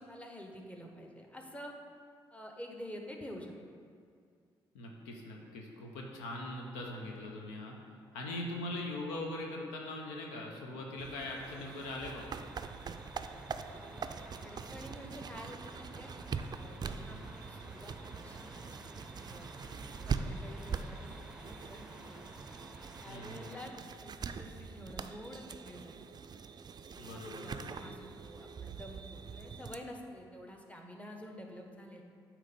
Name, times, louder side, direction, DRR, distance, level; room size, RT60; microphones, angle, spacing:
voice 1, 0.0-1.7 2.3-3.5 13.6-14.0 14.4-16.1 16.5-18.6 19.2-19.8 20.1-21.1 21.4-22.2 23.0-23.7 24.0-25.9 26.9-32.0, equal, 10° left, 1 dB, 1.1 m, -49 dB
voice 2, 4.7-7.8 8.1-12.3 16.9-17.3 23.1-23.6 27.0-27.8, left 1 dB, 90° left, 0 dB, 0.7 m, -41 dB
sound 1, 11.0-29.8, right 5 dB, 40° right, 0.4 m, -43 dB
sound 2, 11.4-23.7, right 1 dB, 5° right, 0.8 m, -52 dB
8.1 x 3.0 x 5.2 m, 2.2 s
hypercardioid pair, 45°, 11 cm